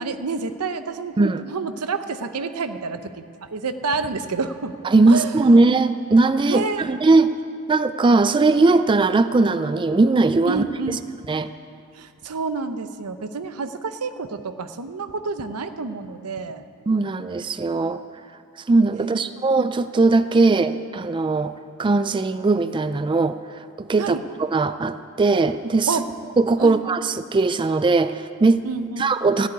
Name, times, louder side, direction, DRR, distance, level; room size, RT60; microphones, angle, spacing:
voice 1, 0.0-4.8 5.1-5.6 6.5-7.0 10.5-11.0 11.9-16.7 19.1-19.6 20.5-20.6 24.0-24.2 25.9-26.0 26.6-26.8 28.6-29.3, right 4 dB, 85° right, 10 dB, 0.8 m, -29 dB
voice 2, 4.8-7.3 7.7-10.6 11.3-11.5 16.9-18.0 18.6-21.5 21.8-23.4 23.8-25.9 26.4-28.6 29.0-29.5, right 3 dB, 20° right, 11 dB, 0.3 m, -19 dB
14.5 x 8.3 x 9.7 m, 2.5 s
head